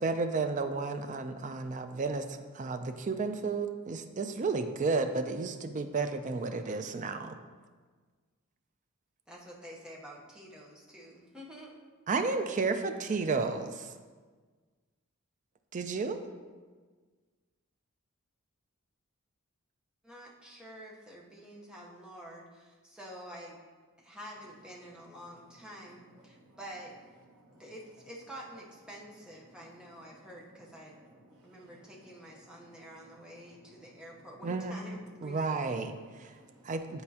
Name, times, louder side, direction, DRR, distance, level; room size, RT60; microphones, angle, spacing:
voice 1, 0.0-7.4 12.1-13.9 15.7-16.2 34.4-34.8 35.2-35.9 36.6-37.0, right 4 dB, 35° right, 8 dB, 0.4 m, -32 dB
voice 2, 9.3-11.8 20.0-23.6 24.0-26.9 27.6-31.0 31.4-35.9, equal, 5° right, -4 dB, 0.9 m, -48 dB
voice 3, 26.1-26.6 27.3-27.7 29.4-30.3 30.8-34.3 35.5-36.7, right 1 dB, 75° right, -2 dB, 1.1 m, -60 dB
9.6 x 4.4 x 2.8 m, 1.5 s
head